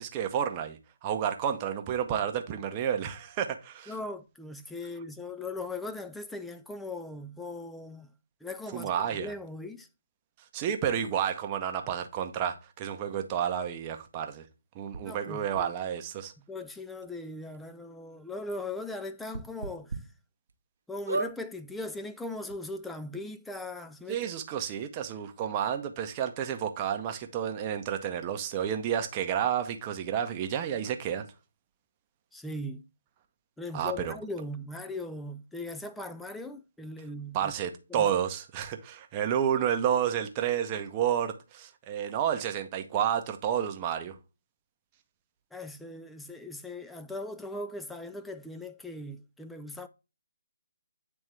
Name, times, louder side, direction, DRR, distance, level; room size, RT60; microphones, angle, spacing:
voice 1, 0.0-3.9 8.7-9.3 10.5-14.4 14.7-16.3 24.1-31.3 33.7-34.1 37.3-44.1, right 9 dB, 25° right, 0.7 m, -30 dB
voice 2, 3.9-8.1 8.4-8.9 9.2-9.9 15.0-15.7 16.5-19.9 20.9-24.3 32.3-32.8 33.6-37.5 37.9-38.1 45.5-49.9, left 2 dB, 5° left, 0.4 m, -39 dB
sound 1, 14.9-15.0 15.5-15.6 16.6-16.7 17.0-17.1 17.5-17.6 19.3-20.0 20.5-20.6 21.0-21.3 22.2-22.3 22.5-22.6, right 3 dB, 65° right, 1.0 m, -33 dB
8.8 x 3.5 x 3.3 m
figure-of-eight pair, 145°, 0 cm